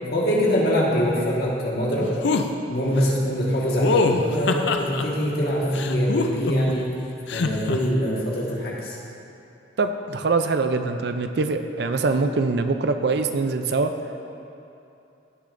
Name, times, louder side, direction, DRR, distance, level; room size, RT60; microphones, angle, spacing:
voice 1, 0.1-2.1 2.7-7.0 7.3-8.9, equal, 55° left, -4 dB, 1.6 m, -23 dB
sound 1, 2.2-2.5 3.8-5.0 5.7-6.7 7.3-7.8, left 4 dB, 70° left, 0.5 m, -23 dB
voice 2, 9.8-13.9, right 3 dB, 60° right, 8 dB, 0.4 m, -23 dB
16.0 x 6.5 x 2.6 m, 2.8 s
head